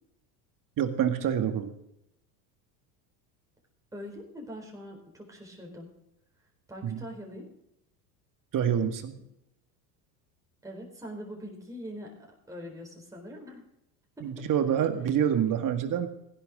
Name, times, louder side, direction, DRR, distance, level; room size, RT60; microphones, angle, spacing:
voice 1, 0.8-1.7 6.8-7.0 8.5-9.1 14.2-16.1, right 9 dB, 40° right, 7 dB, 2.0 m, -27 dB
voice 2, 3.9-5.9 6.7-7.5 10.6-12.1 12.5-13.6 14.2-14.5, equal, 5° right, -1 dB, 4.3 m, -42 dB
15.5 x 11.0 x 3.7 m, 0.81 s
hypercardioid pair, 90°, 49 cm